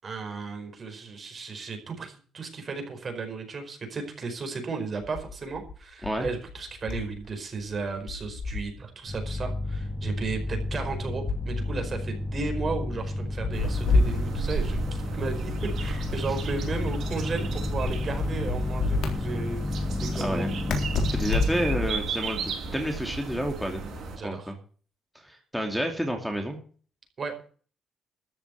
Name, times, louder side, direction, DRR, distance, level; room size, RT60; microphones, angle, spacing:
voice 1, 0.0-14.8 15.1-20.6 24.2-24.5 27.2-27.5, right 4 dB, 45° right, 5 dB, 5.0 m, -34 dB
sound 1, 5.0-7.3 7.6-8.8 9.7-11.9 13.4-14.7 16.1-17.1 17.7-19.1 20.7-22.1, left 3 dB, 70° left, 3.7 m, -30 dB
sound 2, 9.1-21.8, left 2 dB, 20° left, 1.9 m, -31 dB
sound 3, 13.5-24.2, right 5 dB, 65° right, 6.1 m, -35 dB
voice 2, 20.1-20.5 21.1-23.8 24.2-24.6 25.1-26.6, equal, ahead, 4 dB, 2.7 m, -30 dB
13.5 x 7.1 x 8.1 m, 0.42 s
cardioid pair, 90°, 0 cm